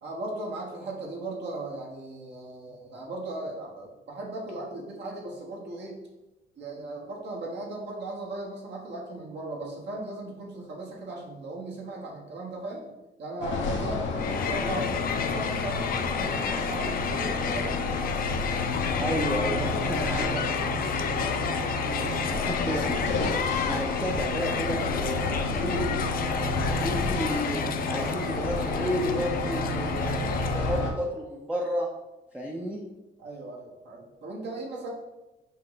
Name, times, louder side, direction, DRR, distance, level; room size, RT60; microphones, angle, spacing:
voice 1, 0.0-6.0 6.6-12.9 13.2-17.9 18.9-19.2 33.2-34.9, right 2 dB, 60° right, -2 dB, 1.1 m, -37 dB
sound 1, 13.4-30.9, left 3 dB, 75° left, 0.8 m, -29 dB
Crowd, 14.2-30.9, left 7 dB, 45° left, 0.4 m, -33 dB
voice 2, 19.0-20.5 21.8-23.2 23.7-26.1 26.7-27.6 27.9-31.9 32.3-32.9, equal, 5° right, -2 dB, 0.5 m, -32 dB
5.5 x 2.1 x 3.9 m, 1.0 s
cardioid pair, 90°, 20 cm